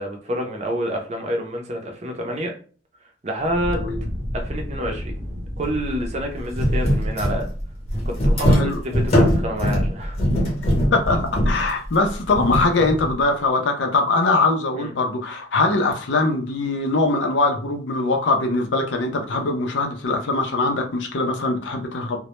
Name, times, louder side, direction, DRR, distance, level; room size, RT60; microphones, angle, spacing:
voice 1, 0.0-2.5 3.2-3.8 4.3-5.1 5.6-7.5 8.1-10.2 14.7-14.9, equal, 35° right, 2 dB, 0.5 m, -28 dB
Fire, 3.4-8.6, equal, ahead, 0.8 m, -33 dB
sound 1, 5.6-5.7 6.0-6.1 6.5-13.2, equal, 35° left, 0.7 m, -21 dB
voice 2, 8.5-8.8 10.9-22.2, left 3 dB, 70° left, 4 dB, 0.5 m, -22 dB
2.1 x 2.0 x 2.9 m, 0.41 s
head